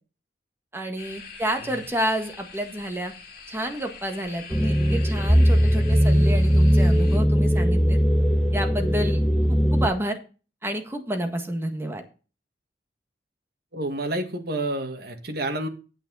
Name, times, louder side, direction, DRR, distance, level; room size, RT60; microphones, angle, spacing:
voice 1, 0.7-3.1 3.5-8.0 8.5-9.2 9.5-10.2 10.6-12.0, equal, 15° right, 4 dB, 1.6 m, -29 dB
sound 1, 1.0-7.2, left 5 dB, 55° left, 3.1 m, -44 dB
sound 2, 4.5-9.9, equal, 5° left, 0.9 m, -19 dB
voice 2, 13.7-15.7, right 1 dB, 60° right, 4 dB, 1.9 m, -29 dB
9.4 x 9.0 x 4.1 m, 0.34 s
head